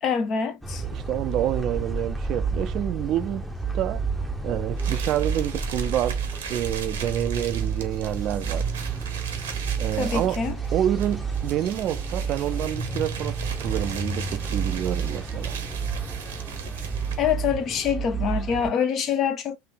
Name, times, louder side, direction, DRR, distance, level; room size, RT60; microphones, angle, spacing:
voice 1, 0.0-0.8 10.0-10.6 17.2-19.6, left 7 dB, 45° left, 0.9 m, -25 dB
sound 1, 0.6-18.7, right 5 dB, ahead, 0.9 m, -30 dB
voice 2, 0.9-3.5 3.7-4.0 4.4-6.2 6.5-8.7 9.8-10.4 10.7-15.5, right 11 dB, 50° right, 0.5 m, -28 dB
sound 2, 4.8-17.3, right 7 dB, 80° right, 1.0 m, -39 dB
3.5 x 2.6 x 3.5 m
hypercardioid pair, 80°, 0 cm